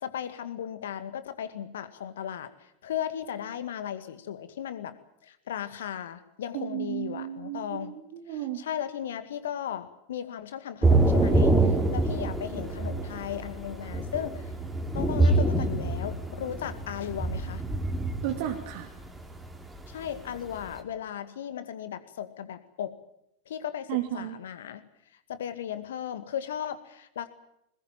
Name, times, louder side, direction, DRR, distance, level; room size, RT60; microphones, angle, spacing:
voice 1, 0.0-2.5 2.8-4.9 5.2-7.9 8.3-14.4 14.9-17.6 19.9-22.9 23.5-24.8 25.3-27.3, left 9 dB, 60° left, 11 dB, 2.2 m, -36 dB
voice 2, 6.5-8.6 18.2-18.9 23.9-24.4, right 13 dB, 45° right, 4 dB, 2.3 m, -33 dB
Thunder / Rain, 10.8-20.8, right 2 dB, 10° right, 3.3 m, -26 dB
22.0 x 20.0 x 9.2 m, 0.77 s
figure-of-eight pair, 90°, 0 cm